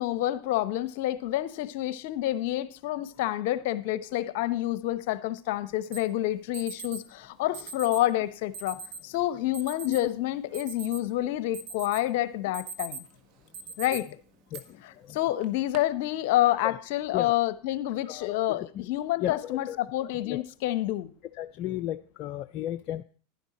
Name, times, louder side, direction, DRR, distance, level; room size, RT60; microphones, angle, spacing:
voice 1, 0.0-8.8 9.0-13.1 13.8-14.1 15.1-21.1, left 14 dB, 65° left, 0.9 m, -28 dB
Alarm, 5.9-6.0 6.5-7.0 7.5-8.0 8.5-9.0 9.5-10.0 10.4-11.2 11.5-12.0 12.4-13.1 13.5-14.0 14.5-14.6 15.4-15.8, right 5 dB, 50° right, 1.5 m, -40 dB
voice 2, 14.5-15.2 16.6-16.7 17.1-17.4 18.0-18.9 19.2-20.4 21.3-23.0, left 13 dB, 50° left, 0.5 m, -35 dB
11.5 x 10.5 x 4.2 m
hypercardioid pair, 105°, 0 cm